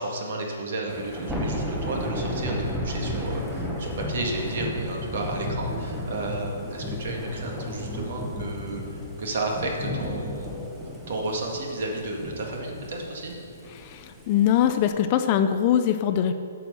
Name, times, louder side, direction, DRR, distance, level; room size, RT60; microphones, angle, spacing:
voice 1, 0.0-8.8 9.2-10.7 11.1-13.3, right 2 dB, 50° right, 0 dB, 1.9 m, -32 dB
Thunder / Rain, 0.9-14.9, left 1 dB, 5° right, 0.8 m, -33 dB
voice 2, 13.7-16.3, left 9 dB, 30° left, 9 dB, 0.4 m, -22 dB
8.4 x 6.2 x 6.8 m, 2.5 s
hypercardioid pair, 170°, 0 cm